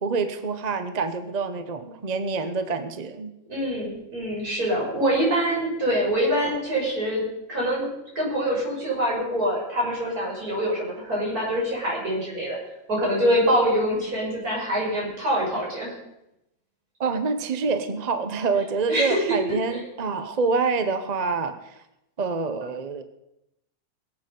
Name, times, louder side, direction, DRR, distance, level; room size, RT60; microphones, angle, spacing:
voice 1, 0.0-3.3 17.0-21.7 22.2-23.0, right 4 dB, 30° right, 9 dB, 0.9 m, -26 dB
voice 2, 3.5-7.9 8.1-12.6 12.9-15.9 18.9-19.4 19.7-19.8, equal, 80° right, -4 dB, 6.5 m, -25 dB
22.5 x 8.3 x 5.3 m, 0.87 s
omnidirectional pair, 1.6 m